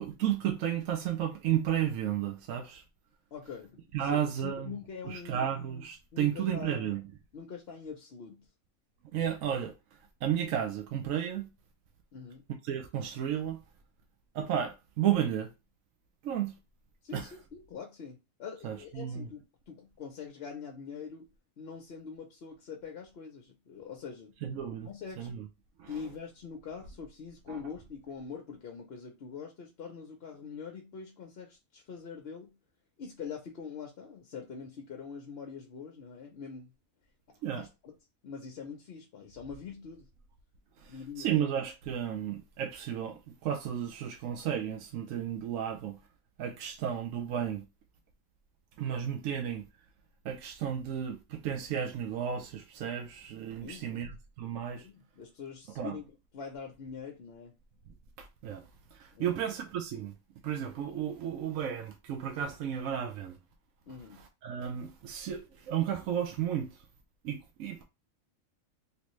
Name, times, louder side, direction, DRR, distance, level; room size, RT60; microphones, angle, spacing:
voice 1, 0.0-2.8 3.9-4.7 5.1-7.0 9.1-9.7 10.2-11.5 12.6-13.6 14.3-15.5 16.2-16.5 17.1-17.2 18.6-19.3 24.4-24.9 25.2-25.4 25.8-25.9 27.5-27.6 37.4-37.7 41.2-46.0 46.4-47.6 48.8-49.6 50.2-54.1 54.4-54.8 55.8-55.9 58.2-58.6 59.0-60.1 60.4-63.4 64.4-66.7 67.2-67.8, right 9 dB, 75° right, 1.0 m, -33 dB
voice 2, 3.3-5.5 6.1-7.0 7.3-8.5 12.1-12.4 17.0-21.3 21.6-24.4 24.8-25.3 25.9-32.5 33.0-36.7 37.5-37.9 38.2-40.1 40.9-41.3 53.6-54.1 54.8-56.1 56.3-57.5 59.1-59.5 63.9-64.2, left 6 dB, 55° left, 0.8 m, -44 dB
3.1 x 2.7 x 3.0 m
omnidirectional pair, 1.4 m